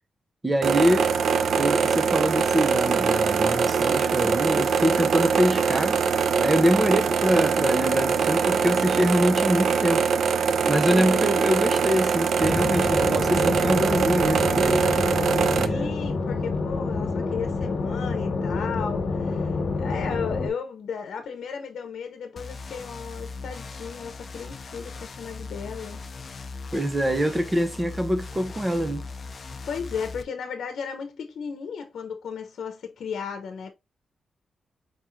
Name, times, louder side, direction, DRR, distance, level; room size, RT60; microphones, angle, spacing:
voice 1, 0.4-1.1 1.6-6.0 6.4-10.1 10.7-14.9 15.6-16.1 26.7-29.0, equal, 15° right, 0.7 m, -24 dB
sound 1, 0.6-15.7, right 6 dB, 70° right, 0.4 m, -23 dB
voice 2, 10.9-11.3 15.6-26.0 29.6-33.7, left 6 dB, 75° left, 0.8 m, -35 dB
sound 2, 12.4-20.5, left 3 dB, 60° left, 1.4 m, -28 dB
sound 3, 22.4-30.2, left 4 dB, 40° left, 0.6 m, -39 dB
4.8 x 3.5 x 3.1 m
wide cardioid pair, 135°, 0 cm